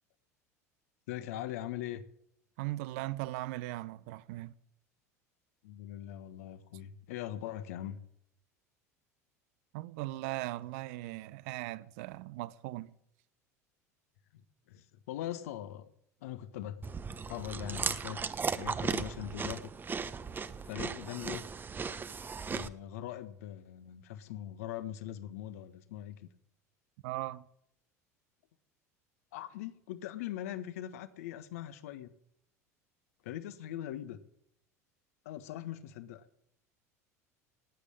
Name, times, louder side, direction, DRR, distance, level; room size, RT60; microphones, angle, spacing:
voice 1, 1.1-2.0 5.6-8.0 14.3-14.4 14.7-15.9 16.2-16.8 17.3-18.2 18.5-19.6 20.6-21.5 22.5-26.2 29.3-32.1 33.2-34.2 35.2-36.2, left 12 dB, 65° left, 1.4 m, -41 dB
voice 2, 2.6-4.5 9.7-13.0 27.0-27.5, right 18 dB, 60° right, 0.8 m, -38 dB
Chewing mastication, 16.8-22.7, right 5 dB, 25° right, 1.0 m, -36 dB
18.5 x 8.4 x 8.8 m
figure-of-eight pair, 75°, 9 cm